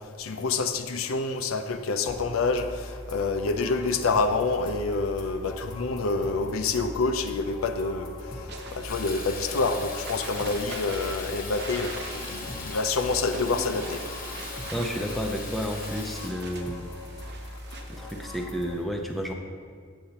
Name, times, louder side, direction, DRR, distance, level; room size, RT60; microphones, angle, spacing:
voice 1, 0.0-8.1 8.7-14.0, left 3 dB, 90° left, 8 dB, 0.5 m, -27 dB
sound 1, 2.0-18.7, left 1 dB, 20° left, 0.9 m, -41 dB
sound 2, 8.5-18.4, right 3 dB, 55° right, 0.8 m, -43 dB
Fill (with liquid), 8.9-16.3, left 4 dB, 40° left, 0.9 m, -39 dB
voice 2, 14.7-16.9 17.9-19.3, equal, ahead, 1 dB, 0.5 m, -31 dB
8.1 x 7.7 x 2.9 m, 2.1 s
head